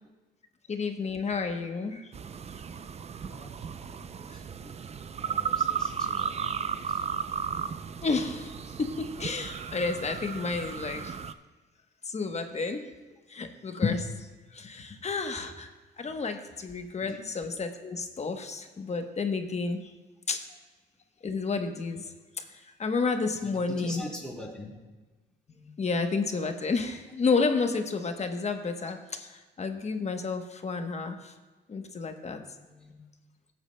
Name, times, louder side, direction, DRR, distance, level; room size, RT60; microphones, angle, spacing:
voice 1, 0.7-2.1 4.3-4.4 8.0-11.1 12.0-12.9 13.3-15.7 16.0-19.9 20.3-20.4 21.2-24.0 25.5-31.3 31.7-33.0, left 4 dB, 35° left, 6 dB, 1.0 m, -31 dB
sound 1, 2.1-11.3, right 7 dB, 35° right, 0.4 m, -34 dB
voice 2, 3.2-4.8 5.1-7.0 17.0-17.2 20.5-20.6 23.3-24.8 32.8-32.9, left 1 dB, 5° left, -4 dB, 3.1 m, -44 dB
17.5 x 8.1 x 2.2 m, 1.2 s
cardioid pair, 90°, 20 cm